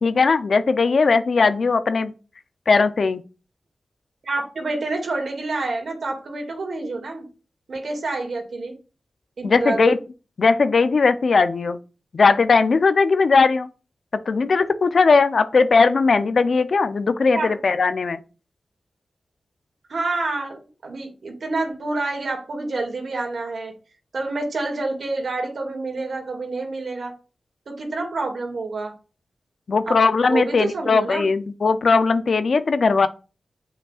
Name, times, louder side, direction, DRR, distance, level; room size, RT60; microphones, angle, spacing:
voice 1, 0.0-2.1 2.7-3.2 9.4-10.0 10.4-11.8 12.1-13.7 14.3-18.2 29.7-33.1, left 4 dB, 70° left, 0.5 m, -18 dB
voice 2, 4.2-7.3 7.7-8.7 9.4-10.0 17.3-17.6 19.9-23.7 24.1-27.1 27.7-28.9 29.8-30.0 30.3-31.3, right 3 dB, 75° right, 2.0 m, -28 dB
7.5 x 5.3 x 2.4 m
cardioid pair, 50°, 0 cm